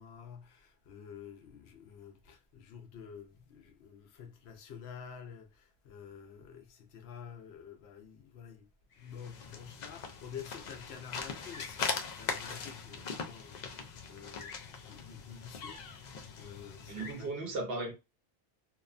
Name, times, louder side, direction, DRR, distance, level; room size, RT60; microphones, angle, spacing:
voice 1, 0.0-8.7 8.9-11.9 12.1-17.6, left 7 dB, 85° left, 0.9 m, -49 dB
sound 1, 9.0-17.3, left 5 dB, 55° left, 0.5 m, -41 dB
voice 2, 16.9-17.9, right 2 dB, 65° right, 1.0 m, -36 dB
2.7 x 2.1 x 2.4 m
omnidirectional pair, 1.1 m